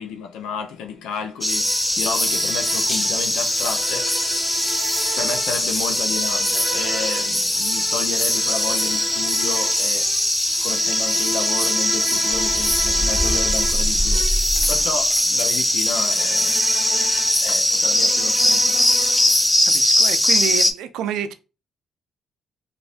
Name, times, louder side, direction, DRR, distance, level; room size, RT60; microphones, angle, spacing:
voice 1, 0.0-4.6 5.1-10.2 10.6-16.6 17.3-18.9, left 6 dB, 85° left, 0.6 m, -32 dB
sound 1, 1.4-20.7, left 1 dB, 10° left, 0.5 m, -20 dB
sound 2, 1.5-19.5, right 4 dB, 50° right, 0.7 m, -36 dB
sound 3, 12.3-15.1, equal, 35° left, 0.8 m, -26 dB
voice 2, 19.6-21.3, right 9 dB, 90° right, 0.4 m, -28 dB
2.5 x 2.5 x 3.4 m
cardioid pair, 90°, 0 cm